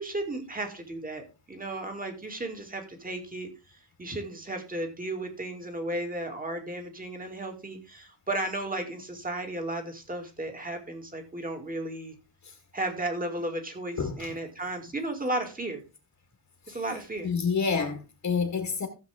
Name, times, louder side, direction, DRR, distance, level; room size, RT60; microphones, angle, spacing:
voice 1, 0.0-12.1 12.7-15.8 16.7-17.3, right 1 dB, 20° right, 2.4 m, -34 dB
voice 2, 14.0-14.4 16.7-18.9, left 5 dB, 45° left, 1.8 m, -29 dB
15.5 x 7.4 x 3.5 m
wide cardioid pair, 160°, 42 cm